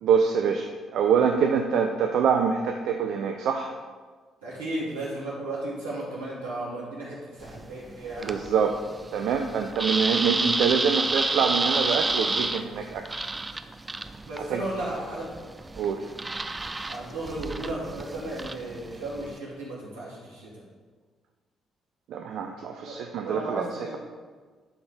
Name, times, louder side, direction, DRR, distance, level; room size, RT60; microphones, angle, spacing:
voice 1, 0.0-3.7 8.2-8.8 9.1-13.2 14.5-14.6 15.8-16.1 22.1-24.0, right 6 dB, 65° right, 4 dB, 0.5 m, -25 dB
voice 2, 4.4-8.4 14.2-15.3 16.9-20.6 22.8-24.0, right 1 dB, 85° right, -8 dB, 2.6 m, -34 dB
sound 1, 7.4-19.4, right 2 dB, 25° right, 0.6 m, -31 dB
12.0 x 4.0 x 5.0 m, 1.5 s
hypercardioid pair, 45°, 0 cm